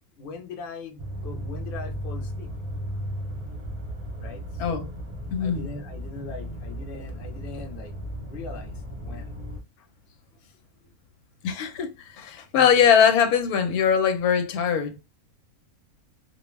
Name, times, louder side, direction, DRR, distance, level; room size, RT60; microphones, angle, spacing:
voice 1, 0.2-2.5 4.2-4.9 5.4-9.4 9.8-9.9 10.4-10.6 12.3-12.7, left 3 dB, 55° left, 0.7 m, -41 dB
sound 1, 1.0-9.6, equal, 35° right, 0.5 m, -35 dB
voice 2, 5.3-5.7 11.4-15.0, left 7 dB, 90° left, 1.1 m, -21 dB
2.5 x 2.1 x 3.1 m
omnidirectional pair, 1.5 m